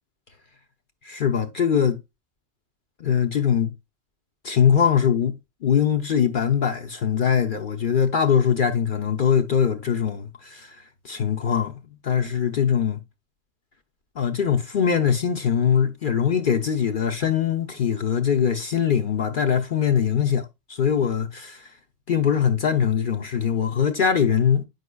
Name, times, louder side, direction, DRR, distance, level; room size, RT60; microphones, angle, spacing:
voice 1, 1.0-2.0 3.0-3.7 4.4-10.8 11.0-13.0 14.2-20.4 20.8-21.7 22.1-24.6, left 7 dB, 50° left, 0.7 m, -22 dB
8.0 x 5.6 x 2.2 m
omnidirectional pair, 1.3 m